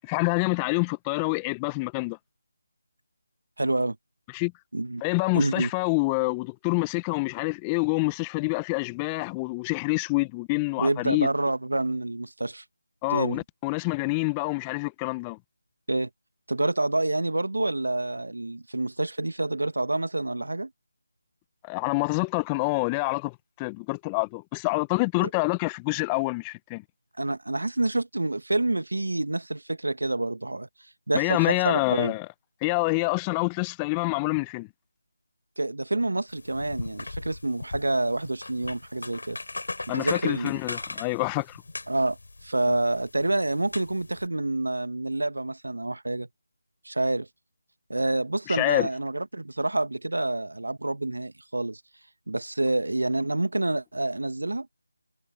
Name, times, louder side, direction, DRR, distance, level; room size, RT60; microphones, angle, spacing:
voice 1, 0.0-2.2 4.3-4.5 5.0-11.3 13.0-15.4 21.6-26.8 31.1-32.3 32.6-34.7 39.9-41.6 42.7-42.8 48.5-48.9, left 28 dB, 15° left, 1.1 m, -27 dB
voice 2, 3.6-4.0 4.7-5.0 5.3-5.7 10.8-12.6 13.1-13.4 15.9-16.1 16.5-20.7 27.2-30.7 31.1-32.1 35.6-39.4 39.9-40.6 41.9-42.2 42.4-46.3 46.8-47.3 47.9-51.8 52.3-54.7, right 2 dB, 75° right, 1.8 m, -27 dB
sound 1, 36.3-44.3, left 2 dB, 65° left, 4.0 m, -39 dB
figure-of-eight pair, 160°, 0 cm